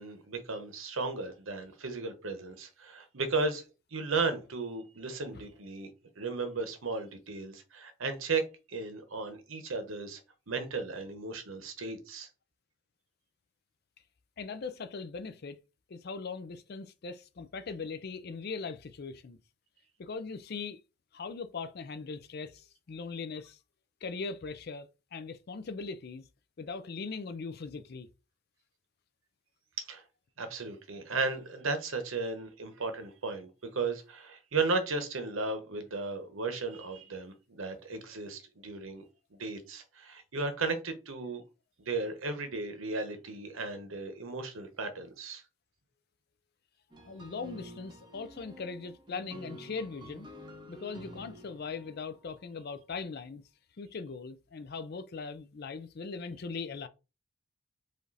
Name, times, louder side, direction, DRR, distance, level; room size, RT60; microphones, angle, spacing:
voice 1, 0.0-3.6 3.9-5.9 6.2-10.2 10.5-12.3 29.8-30.0 30.4-39.0 39.3-41.4 41.8-45.4, right 3 dB, 75° right, 1.0 m, -35 dB
voice 2, 14.4-15.6 15.9-19.4 20.0-20.8 21.1-23.6 24.0-26.2 26.6-28.1 47.0-50.3 50.7-53.4 53.8-56.9, left 4 dB, 50° left, 0.4 m, -40 dB
sound 1, 46.9-52.3, right 1 dB, 20° right, 0.8 m, -49 dB
5.0 x 2.6 x 4.0 m
head